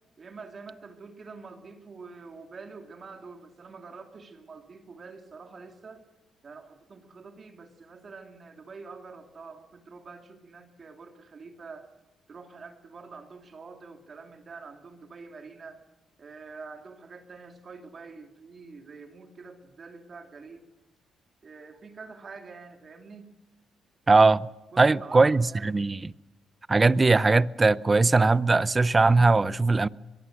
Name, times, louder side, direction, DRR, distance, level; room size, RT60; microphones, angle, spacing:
voice 1, 0.2-6.0 6.4-11.9 12.3-15.8 16.2-20.6 21.4-23.3 24.7-25.7, right 4 dB, 40° right, 2.9 m, -46 dB
voice 2, 24.1-24.5 24.8-26.0 26.7-29.9, right 3 dB, 25° right, 0.7 m, -20 dB
24.0 x 22.5 x 6.5 m
cardioid pair, 90°, 0 cm